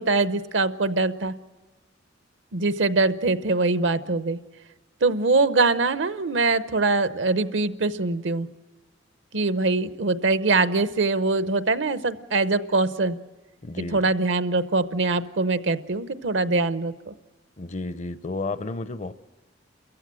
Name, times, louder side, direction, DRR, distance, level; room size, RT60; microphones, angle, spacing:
voice 1, 0.0-1.3 2.5-4.4 5.0-8.5 9.3-13.2 13.9-17.1, right 3 dB, 70° right, 0.8 m, -23 dB
voice 2, 13.6-14.0 17.6-19.1, left 2 dB, 40° left, 0.6 m, -32 dB
29.5 x 14.5 x 7.5 m
head